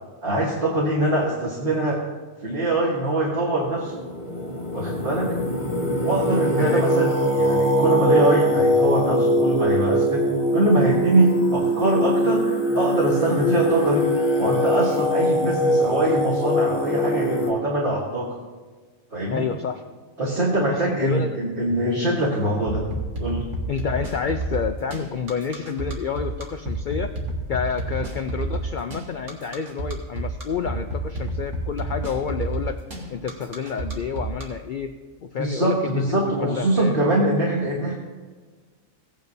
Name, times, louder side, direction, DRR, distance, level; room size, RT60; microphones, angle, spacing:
voice 1, 0.2-2.0 2.4-4.0 4.7-5.3 6.0-10.2 10.5-14.1 14.4-18.4 19.1-19.5 20.2-22.9 23.2-23.4 35.4-37.9, right 1 dB, 40° right, -4 dB, 1.6 m, -23 dB
Singing, 3.7-17.5, equal, 25° left, 1.2 m, -22 dB
voice 2, 19.3-19.8 20.7-21.4 23.7-27.1 27.5-32.8 33.1-34.9 35.2-37.0, left 6 dB, 90° left, 7 dB, 0.4 m, -29 dB
sound 1, 22.7-34.4, right 2 dB, 60° right, 2.0 m, -29 dB
17.0 x 8.9 x 2.7 m, 1.4 s
omnidirectional pair, 1.4 m